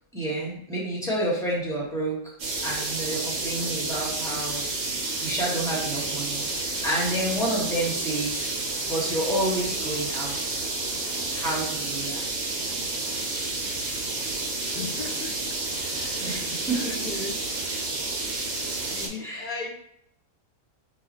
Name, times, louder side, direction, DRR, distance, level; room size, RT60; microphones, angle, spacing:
voice 1, 0.1-2.3 2.6-4.7 5.2-8.5 8.9-10.6 11.3-12.6 16.2-17.3 19.2-19.6, right 1 dB, 5° left, -5 dB, 1.2 m, -30 dB
sound 1, 2.4-19.1, right 3 dB, 70° right, 1.3 m, -30 dB
voice 2, 14.7-15.4 15.8-16.5 16.7-17.4 18.9-19.7, left 4 dB, 70° left, 1 dB, 0.4 m, -37 dB
5.1 x 2.4 x 3.0 m, 0.77 s
omnidirectional pair, 1.4 m